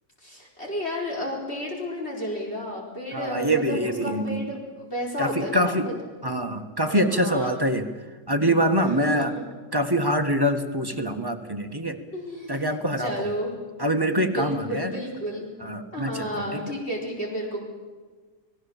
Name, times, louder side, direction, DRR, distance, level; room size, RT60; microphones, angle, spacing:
voice 1, 0.2-5.9 6.9-7.5 8.8-9.4 12.1-13.5 14.1-15.5 15.9-17.6, equal, 45° left, -2 dB, 4.9 m, -32 dB
voice 2, 3.1-4.5 5.2-5.9 6.2-7.9 8.3-9.4 9.7-12.0 12.5-13.3 13.8-14.9 15.6-16.7, right 1 dB, 15° right, 5 dB, 1.4 m, -25 dB
30.0 x 19.0 x 7.2 m, 1.4 s
omnidirectional pair, 1.6 m